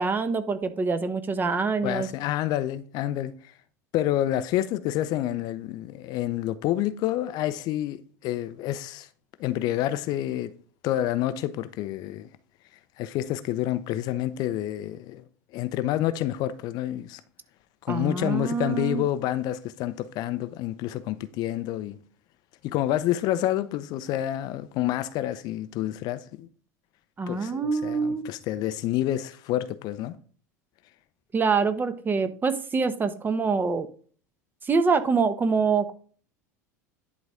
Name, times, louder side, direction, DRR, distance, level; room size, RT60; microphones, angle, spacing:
voice 1, 0.0-2.1 17.9-19.0 27.2-28.3 31.3-33.9 34.6-35.9, right 4 dB, 20° right, 1.1 m, -25 dB
voice 2, 1.8-3.3 3.9-9.1 9.4-10.5 10.8-12.3 13.0-15.2 15.5-17.2 17.8-22.0 22.6-26.5 27.3-30.2, left 13 dB, 50° left, 0.6 m, -28 dB
11.0 x 4.1 x 5.0 m
figure-of-eight pair, 75°, 9 cm